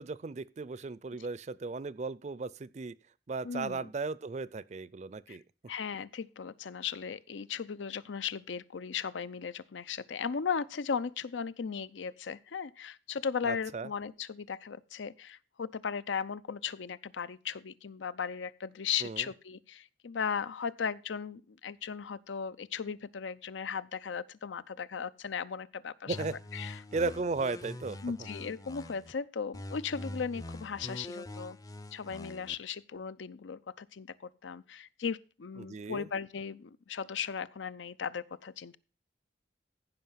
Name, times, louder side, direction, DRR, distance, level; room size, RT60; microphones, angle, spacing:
voice 1, 0.0-2.9 3.3-5.4 13.5-13.9 19.0-19.3 26.1-26.3 26.7-28.0 35.6-36.1, right 4 dB, 40° right, 0.4 m, -36 dB
voice 2, 3.4-3.9 5.3-5.4 5.7-26.2 26.5-26.8 28.0-31.6 31.9-38.8, left 6 dB, 90° left, 0.6 m, -37 dB
sound 1, 26.1-29.1 29.5-32.5, left 1 dB, 20° left, 0.5 m, -44 dB
15.0 x 5.3 x 5.7 m
head